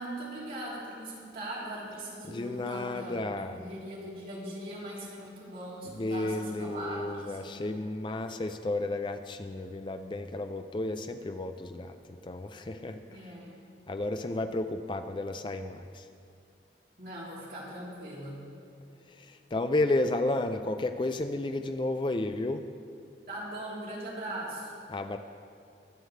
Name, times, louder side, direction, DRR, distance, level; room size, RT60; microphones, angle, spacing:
voice 1, 0.0-3.2 3.5-7.6 13.0-13.6 17.0-18.5 23.3-24.7, right 1 dB, 50° right, -6 dB, 2.9 m, -40 dB
voice 2, 2.0-3.7 5.8-13.4 13.9-16.1 19.0-22.7 24.9-25.2, left 2 dB, 25° left, 8 dB, 0.4 m, -32 dB
22.5 x 7.7 x 3.3 m, 2.4 s
head